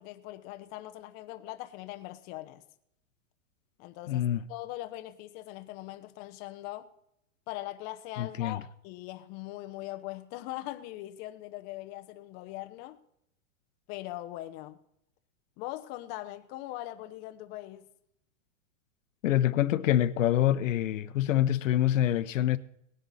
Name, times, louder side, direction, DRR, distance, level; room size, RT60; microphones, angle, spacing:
voice 1, 0.0-2.6 3.8-6.9 7.5-13.0 13.9-14.8 15.6-17.9, left 16 dB, 25° left, 0.7 m, -41 dB
voice 2, 4.1-4.4 8.2-8.6 19.2-22.6, left 12 dB, 85° left, 0.9 m, -26 dB
18.0 x 10.5 x 4.1 m
supercardioid pair, 160°, 38 cm